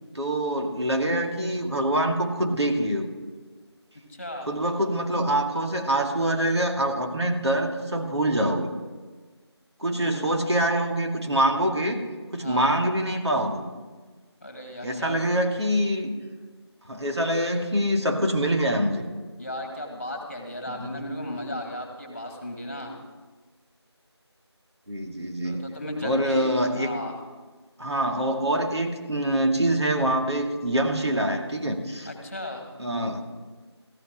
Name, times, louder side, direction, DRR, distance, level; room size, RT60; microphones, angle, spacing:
voice 1, 0.1-3.1 4.4-8.7 9.8-12.1 12.3-13.6 14.8-16.1 16.9-19.1 20.7-21.1 24.9-25.7 26.0-26.9 27.8-32.1 32.8-33.2, right 1 dB, 70° right, 2 dB, 2.2 m, -25 dB
voice 2, 14.4-15.2 19.4-22.9 25.4-27.1 32.1-32.7, left 1 dB, 30° left, 3 dB, 2.0 m, -35 dB
14.5 x 5.5 x 9.2 m, 1.4 s
figure-of-eight pair, 175°, 15 cm